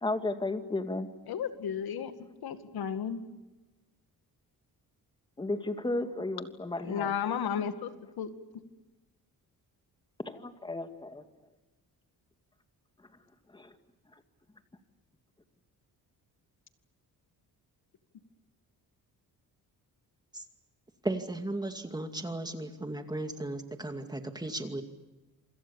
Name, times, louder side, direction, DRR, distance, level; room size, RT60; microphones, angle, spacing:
voice 1, 0.0-1.1 5.4-7.1 10.3-11.2 13.5-13.7, left 2 dB, 15° left, 7 dB, 2.2 m, -33 dB
voice 2, 1.3-2.1 2.4-3.2 6.8-7.9 8.2-8.3, left 8 dB, 75° left, 9 dB, 2.2 m, -33 dB
voice 3, 21.0-24.8, right 2 dB, 10° right, 6 dB, 2.4 m, -35 dB
27.5 x 26.0 x 7.2 m, 1.1 s
cardioid pair, 150°, 37 cm